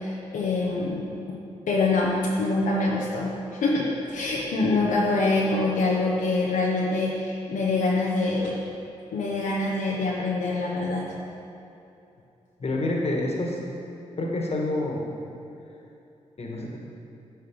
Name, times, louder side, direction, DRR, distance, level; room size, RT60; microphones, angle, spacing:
voice 1, 0.0-1.4 1.7-8.6 9.1-11.1, left 3 dB, 85° left, -4 dB, 0.9 m, -25 dB
voice 2, 12.6-13.6 14.2-15.2 16.4-16.8, left 2 dB, 50° left, -1 dB, 1.6 m, -28 dB
9.6 x 4.5 x 5.3 m, 2.8 s
supercardioid pair, 50°, 13 cm